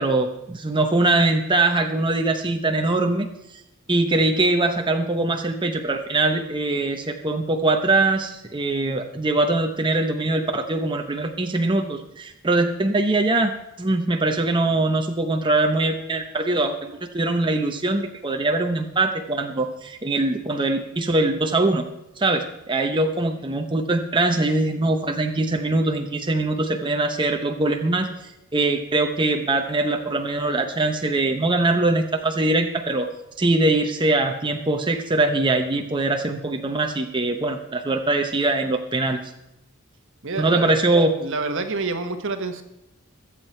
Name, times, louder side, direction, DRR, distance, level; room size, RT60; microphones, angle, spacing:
voice 1, 0.0-3.3 3.9-21.8 22.2-33.1 33.4-39.3 40.4-41.1, right 2 dB, 25° right, 4 dB, 0.9 m, -22 dB
voice 2, 40.2-40.8 41.2-42.6, right 3 dB, 60° right, 7 dB, 1.3 m, -28 dB
22.5 x 7.6 x 4.5 m, 0.86 s
head